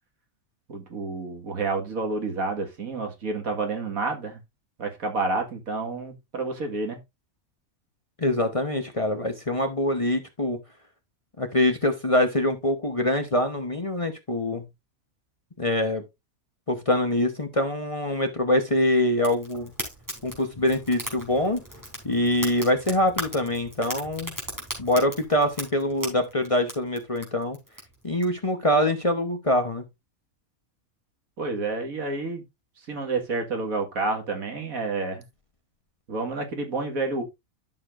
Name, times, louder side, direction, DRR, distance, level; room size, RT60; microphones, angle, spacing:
voice 1, 0.7-4.4 4.8-7.0 31.4-32.4 32.9-35.2 36.1-37.2, right 3 dB, 75° right, 2.2 m, -29 dB
voice 2, 8.2-10.6 11.4-14.7 15.6-16.0 16.7-19.7 20.2-21.6 22.0-24.3 24.8-27.6 28.0-29.8, left 1 dB, 25° left, 1.0 m, -24 dB
Fire, 19.2-28.2, equal, 10° right, 3.7 m, -38 dB
12.0 x 6.7 x 2.5 m
omnidirectional pair, 1.5 m